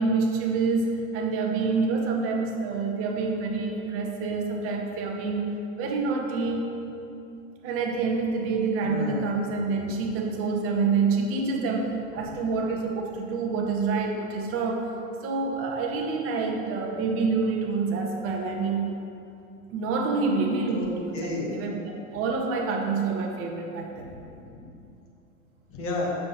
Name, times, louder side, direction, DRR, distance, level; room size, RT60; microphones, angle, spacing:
voice 1, 0.0-6.7 7.6-14.9 15.2-18.9 19.7-24.1, right 4 dB, 35° right, 3 dB, 0.8 m, -27 dB
voice 2, 8.8-9.2 12.2-12.3 20.7-20.9 21.1-21.5 24.0-24.7 25.7-26.1, left 2 dB, 30° left, -2 dB, 1.5 m, -33 dB
7.3 x 6.3 x 3.0 m, 2.7 s
hypercardioid pair, 100°, 41 cm